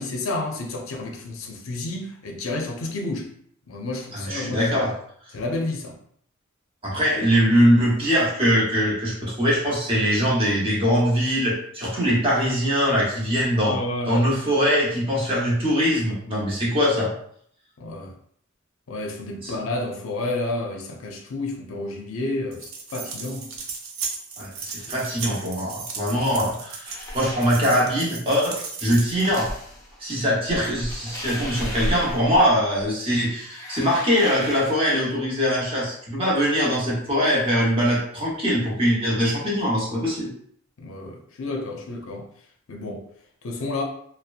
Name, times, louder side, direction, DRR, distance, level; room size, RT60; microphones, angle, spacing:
voice 1, 0.0-3.3 3.7-4.7 5.3-6.0 13.6-14.3 17.8-18.1 18.9-23.5 24.9-25.0 40.8-42.3 42.7-43.0 43.4-43.8, left 2 dB, 85° left, 0.5 m, -30 dB
voice 2, 4.1-4.9 6.8-13.8 14.1-17.1 19.4-19.5 24.4-29.5 30.0-40.3, equal, 30° right, 0.8 m, -22 dB
sound 1, 22.5-29.4, right 5 dB, 85° right, 0.5 m, -36 dB
sound 2, 26.9-28.0 29.1-30.0 30.5-32.9 33.2-35.1, left 1 dB, 15° left, 0.5 m, -35 dB
2.7 x 2.1 x 2.4 m
head